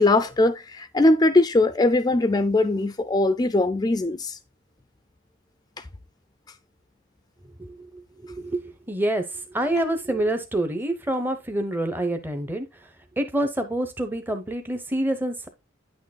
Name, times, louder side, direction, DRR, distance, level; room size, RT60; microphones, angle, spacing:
voice 1, 0.0-4.4, left 2 dB, 20° left, 0.4 m, -20 dB
voice 2, 7.6-12.9 13.2-15.5, right 1 dB, 10° right, 0.7 m, -27 dB
9.2 x 6.4 x 2.2 m
head